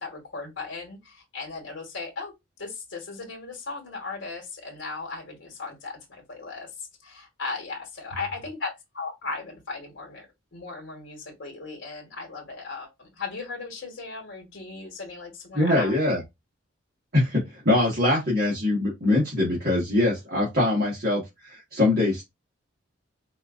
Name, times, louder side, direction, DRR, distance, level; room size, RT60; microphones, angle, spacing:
voice 1, 0.0-2.3 2.6-10.3 10.5-15.9, left 4 dB, 60° left, 1.2 m, -37 dB
voice 2, 15.5-16.2 17.1-22.2, left 2 dB, 50° right, 1.4 m, -23 dB
4.3 x 2.5 x 2.4 m
head